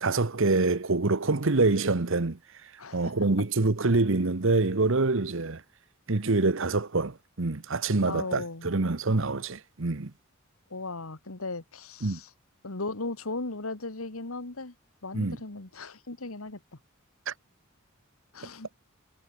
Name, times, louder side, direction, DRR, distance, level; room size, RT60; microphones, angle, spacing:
voice 1, 0.0-5.6 6.1-10.1 12.0-12.2 15.1-15.4 17.3-17.4, right 3 dB, 65° right, 1.1 m, -26 dB
voice 2, 2.8-3.1 8.1-8.7 10.7-12.3 12.6-14.7 15.0-16.6 18.3-18.7, left 3 dB, 85° left, 2.1 m, -37 dB
head